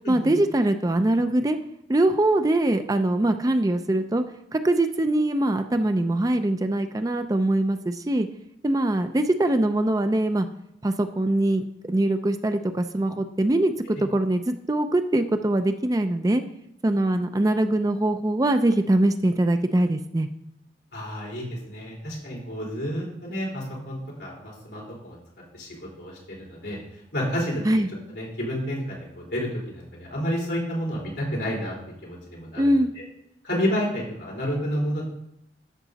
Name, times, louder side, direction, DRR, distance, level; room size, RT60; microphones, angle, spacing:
voice 1, 0.1-1.6 1.9-4.2 4.5-8.3 8.6-10.5 10.8-16.4 16.8-20.3 27.6-27.9 32.6-32.9, right 1 dB, 20° right, 8 dB, 0.4 m, -22 dB
voice 2, 20.9-25.2 25.5-25.7 26.0-26.8 27.1-27.8 28.1-31.8 32.0-32.7 33.4-35.0, equal, 65° left, -4 dB, 3.9 m, -30 dB
12.0 x 6.7 x 4.0 m, 0.78 s
head